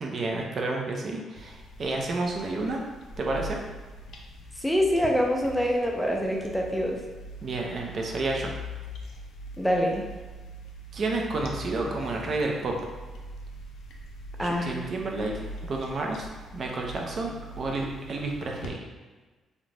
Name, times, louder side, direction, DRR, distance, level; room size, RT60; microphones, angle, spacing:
voice 1, 0.0-2.8 3.2-3.6 7.4-8.5 10.9-12.8 14.4-18.8, right 2 dB, 50° right, 0 dB, 0.5 m, -30 dB
sound 1, 1.3-18.7, left 1 dB, 75° left, 0.3 m, -42 dB
voice 2, 4.6-7.0 9.6-10.1 14.4-14.7, equal, 5° left, 0 dB, 0.4 m, -25 dB
2.5 x 2.1 x 3.2 m, 1.3 s
cardioid pair, 90°, 0 cm